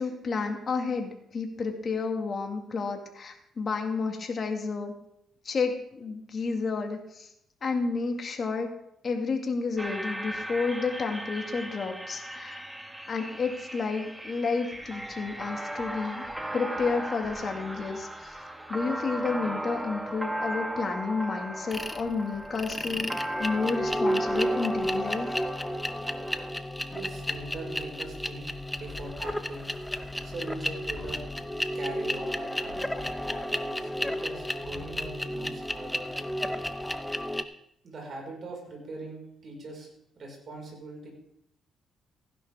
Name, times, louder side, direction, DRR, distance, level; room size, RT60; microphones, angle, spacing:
voice 1, 0.0-4.9 5.4-7.3 7.6-8.7 9.0-12.7 13.1-16.2 16.5-18.4 18.7-25.4, left 4 dB, 45° left, 3 dB, 2.1 m, -31 dB
sound 1, 9.8-26.5, right 1 dB, 10° right, 1.2 m, -37 dB
sound 2, 21.7-22.0 22.5-37.4, equal, 10° left, 0.8 m, -32 dB
voice 2, 26.9-28.5 28.7-29.7 30.2-31.2 31.7-36.1 37.8-39.9 40.2-41.1, right 2 dB, 50° right, 0 dB, 5.3 m, -41 dB
16.0 x 11.0 x 3.6 m, 0.76 s
cardioid pair, 90°, 0 cm